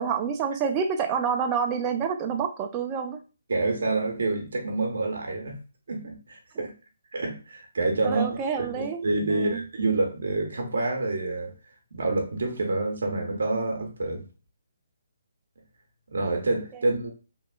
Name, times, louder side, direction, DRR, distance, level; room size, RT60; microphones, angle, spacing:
voice 1, 0.0-3.2 8.0-9.6, right 6 dB, 25° right, 0.4 m, -28 dB
voice 2, 3.5-5.6 5.9-6.7 7.1-8.3 8.6-11.5 11.9-14.2 16.1-17.1, right 2 dB, 70° right, 0.7 m, -27 dB
2.8 x 2.3 x 2.3 m
figure-of-eight pair, 145°, 0 cm